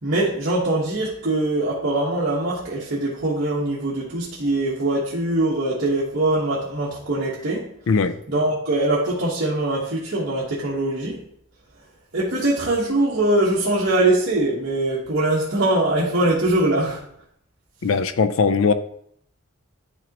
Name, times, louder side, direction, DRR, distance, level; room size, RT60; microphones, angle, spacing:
voice 1, 0.0-7.7 8.3-11.2 12.1-17.0, right 2 dB, 55° right, -7 dB, 1.3 m, -22 dB
voice 2, 7.9-8.2 17.8-18.7, left 5 dB, 70° left, 12 dB, 0.5 m, -19 dB
11.0 x 3.8 x 2.9 m, 0.68 s
head